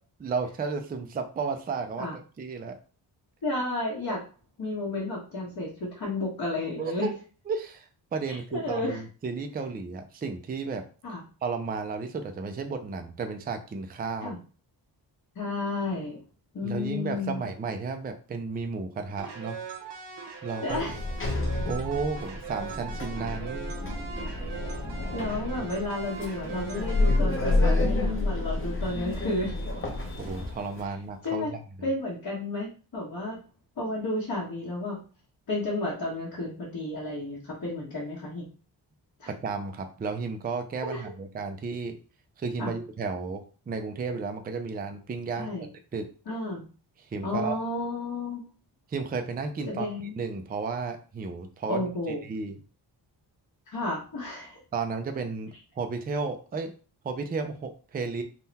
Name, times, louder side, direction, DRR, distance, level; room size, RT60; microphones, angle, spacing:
voice 1, 0.2-2.8 6.8-7.1 7.5-10.8 11.4-14.4 16.6-19.6 20.4-20.8 21.7-23.7 30.2-31.6 39.3-42.0 42.4-45.5 45.9-46.1 47.1-47.6 48.9-49.9 50.2-51.9 52.2-52.6 54.7-56.7 57.0-58.2, right 4 dB, 25° right, 6 dB, 0.4 m, -33 dB
voice 2, 3.4-4.2 4.6-7.1 8.3-9.0 11.0-11.2 14.2-14.4 15.3-16.2 16.5-17.4 20.6-21.0 25.1-29.6 31.2-31.5 31.8-33.4 33.8-35.0 35.5-38.5 39.2-39.3 40.8-41.0 42.6-42.7 45.4-45.7 46.3-46.7 47.2-48.4 49.7-50.2 51.7-52.2 53.7-54.6, left 2 dB, 55° left, -6 dB, 1.4 m, -32 dB
sound 1, 19.2-27.2, right 6 dB, 70° right, 1.0 m, -41 dB
Sliding door, 20.7-30.8, left 2 dB, 30° left, 0.7 m, -29 dB
3.7 x 2.3 x 4.1 m, 0.38 s
wide cardioid pair, 150°, 42 cm